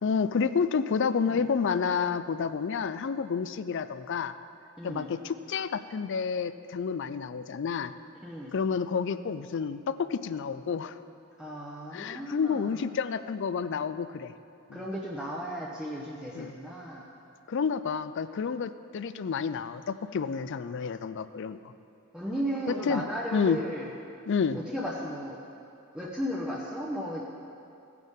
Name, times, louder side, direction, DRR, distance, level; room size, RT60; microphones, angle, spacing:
voice 1, 0.0-4.3 4.8-7.9 8.5-10.9 11.9-14.3 14.7-14.8 16.4-16.5 17.5-21.6 22.9-23.0 23.3-23.6 24.3-24.6, left 6 dB, 55° left, 13 dB, 0.4 m, -29 dB
voice 2, 4.8-5.1 8.2-8.5 11.4-12.7 14.7-17.1 22.1-23.9 24.5-25.4 25.9-27.2, equal, 5° right, -5 dB, 0.8 m, -35 dB
16.5 x 9.4 x 3.7 m, 2.6 s
head